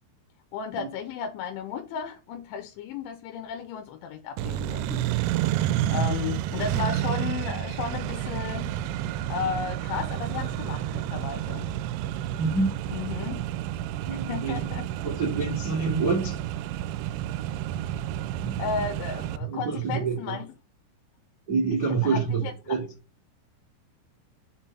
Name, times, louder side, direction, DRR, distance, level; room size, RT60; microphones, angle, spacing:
voice 1, 0.5-5.1 5.9-8.7 9.3-11.7 12.9-13.4 14.1-14.9 18.6-20.5 21.9-22.5, left 7 dB, 80° left, 3.1 m, -34 dB
Accelerating revving vroom, 4.4-19.4, right 12 dB, 85° right, 3.1 m, -30 dB
voice 2, 5.7-6.1 12.3-12.7 14.0-14.6 15.0-16.4 18.4-18.8 19.5-20.4 21.5-22.8, right 5 dB, 50° right, 1.1 m, -27 dB
7.1 x 4.4 x 5.6 m
omnidirectional pair, 5.8 m